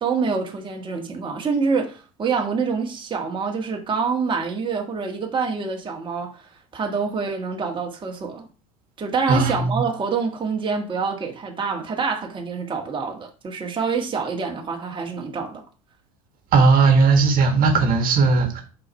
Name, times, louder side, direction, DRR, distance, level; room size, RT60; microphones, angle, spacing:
voice 1, 0.0-6.4 6.7-8.5 9.0-15.6, right 5 dB, 25° right, 1.5 m, -26 dB
voice 2, 9.3-9.8 16.5-18.6, right 4 dB, 50° right, 1.6 m, -17 dB
5.3 x 4.5 x 5.5 m
hypercardioid pair, 85°, 19 cm